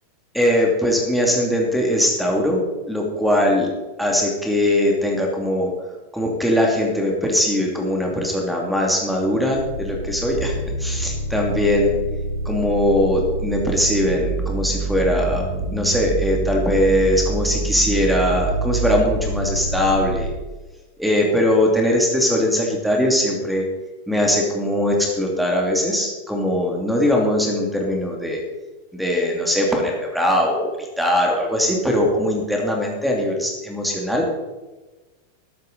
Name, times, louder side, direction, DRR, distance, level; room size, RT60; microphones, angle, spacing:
voice 1, 0.3-5.7 6.1-12.0 12.4-15.4 15.7-20.3 21.0-23.7 24.1-28.4 28.9-34.3, left 1 dB, ahead, 0 dB, 2.7 m, -21 dB
sound 1, 9.5-20.3, right 3 dB, 55° right, 3.0 m, -26 dB
13.5 x 12.5 x 4.2 m, 1.2 s
figure-of-eight pair, 90°, 0 cm